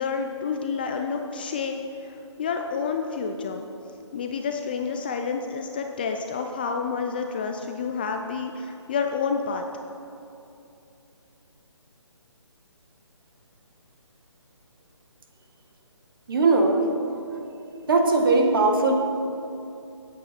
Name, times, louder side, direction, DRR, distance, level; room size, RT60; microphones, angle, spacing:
voice 1, 0.0-3.6 4.1-9.7, left 5 dB, 20° left, 4 dB, 0.4 m, -29 dB
voice 2, 16.3-16.8 17.9-19.0, right 3 dB, 45° right, 3 dB, 1.6 m, -19 dB
17.5 x 8.4 x 4.3 m, 2.7 s
figure-of-eight pair, 145°, 16 cm